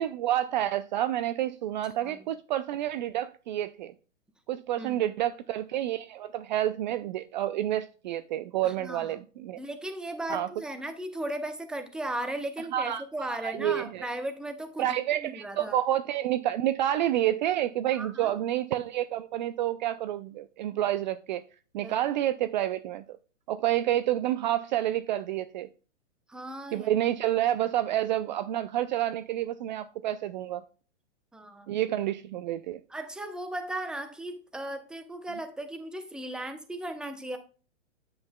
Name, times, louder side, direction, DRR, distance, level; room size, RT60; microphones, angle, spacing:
voice 1, 0.0-3.9 4.5-9.6 10.3-10.5 12.7-14.1 14.8-21.4 21.7-23.0 23.5-25.7 26.7-30.6 31.7-32.8, right 12 dB, 40° right, 0.4 m, -29 dB
voice 2, 8.6-9.1 9.6-15.8 17.9-18.3 21.8-21.9 26.3-26.9 31.3-31.7 32.9-37.4, right 1 dB, ahead, 0.7 m, -36 dB
9.7 x 7.9 x 2.2 m
hypercardioid pair, 130°, 36 cm